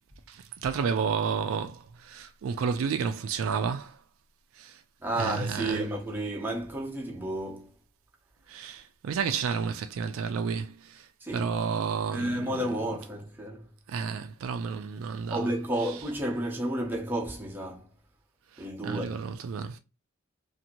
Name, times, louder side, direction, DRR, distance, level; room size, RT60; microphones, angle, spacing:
voice 1, 0.3-4.0 4.6-4.8 5.2-5.9 8.5-11.1 11.3-12.6 13.9-15.5 18.6-19.8, right 6 dB, 65° right, 0.3 m, -31 dB
voice 2, 5.0-7.7 11.2-11.5 12.1-13.7 15.3-17.9 18.6-19.2, right 1 dB, 10° right, 0.7 m, -31 dB
2.7 x 2.5 x 2.9 m
head